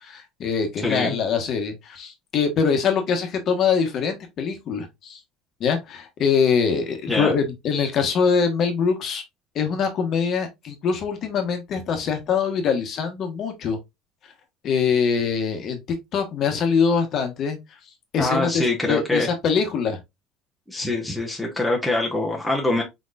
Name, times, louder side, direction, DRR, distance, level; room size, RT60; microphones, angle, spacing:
voice 1, 0.0-5.2 5.6-9.2 9.5-13.8 14.6-15.8 16.1-17.6 18.1-20.0, left 6 dB, 35° left, 1.2 m, -23 dB
voice 2, 0.8-1.1 7.1-7.3 18.2-19.3 20.7-22.8, left 2 dB, ahead, 0.9 m, -24 dB
4.6 x 4.3 x 2.4 m
cardioid pair, 170°, 0 cm